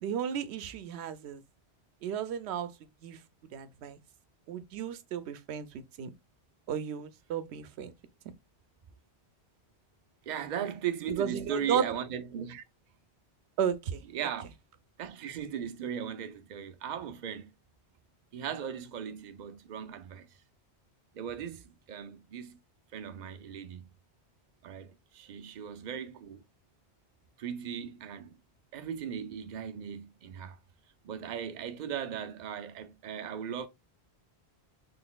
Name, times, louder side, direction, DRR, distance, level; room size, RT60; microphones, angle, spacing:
voice 1, 0.0-1.4 2.0-2.7 3.0-3.2 3.5-4.0 4.5-6.1 6.7-7.9 11.2-11.9 13.6-14.0, right 8 dB, 80° right, 0.9 m, -33 dB
voice 2, 10.3-12.6 14.1-14.5 15.0-17.5 18.3-20.3 21.1-22.6 22.9-23.9 24.6-26.4 27.4-28.4 28.7-30.6 31.0-33.7, right 8 dB, 55° right, 0.6 m, -38 dB
3.9 x 3.4 x 2.3 m
omnidirectional pair, 1.1 m